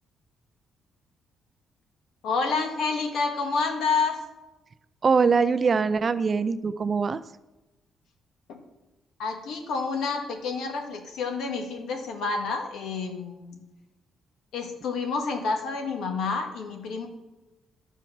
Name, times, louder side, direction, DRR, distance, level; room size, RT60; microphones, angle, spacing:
voice 1, 2.2-4.2 8.5-8.6 9.2-13.6 14.5-17.1, left 4 dB, 80° left, 4 dB, 1.7 m, -29 dB
voice 2, 5.0-7.2, right 5 dB, 30° right, 13 dB, 0.4 m, -23 dB
12.0 x 4.5 x 7.2 m, 1.1 s
cardioid pair, 155°, 0 cm